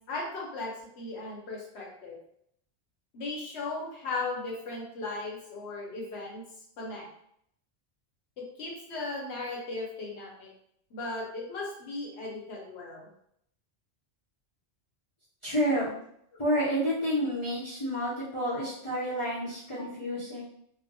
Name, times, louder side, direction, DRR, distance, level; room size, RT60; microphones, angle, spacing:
voice 1, 0.1-2.2 3.1-6.4 6.8-7.1 8.4-10.5 10.9-13.1 17.8-18.1 18.4-18.7 19.0-19.1 19.8-19.9, left 3 dB, 75° left, -2 dB, 1.0 m, -37 dB
voice 2, 15.4-15.9 16.4-20.4, equal, 35° left, -9 dB, 0.6 m, -29 dB
2.8 x 2.1 x 2.6 m, 0.71 s
omnidirectional pair, 1.1 m